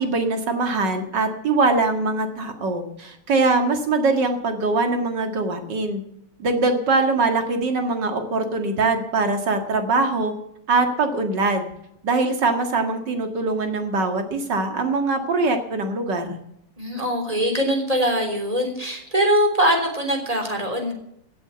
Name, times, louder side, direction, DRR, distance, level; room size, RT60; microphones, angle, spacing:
voice 1, 0.0-6.0 6.4-10.3 10.7-11.7 12.0-16.4, right 3 dB, 55° right, 5 dB, 2.6 m, -22 dB
voice 2, 16.8-20.9, equal, 15° right, 3 dB, 3.4 m, -22 dB
16.0 x 8.7 x 7.0 m, 0.77 s
omnidirectional pair, 2.4 m